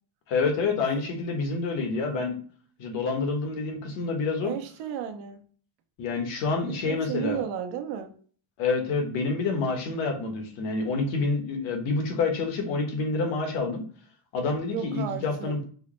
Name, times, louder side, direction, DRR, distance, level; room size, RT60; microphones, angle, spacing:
voice 1, 0.3-2.4 2.8-4.5 6.0-7.4 8.6-13.8 14.3-15.6, left 4 dB, 65° left, 3 dB, 1.3 m, -28 dB
voice 2, 4.4-5.4 6.6-8.1 14.7-15.6, right 9 dB, 85° right, 7 dB, 0.8 m, -34 dB
4.8 x 2.0 x 3.0 m, 0.43 s
cardioid pair, 130°, 49 cm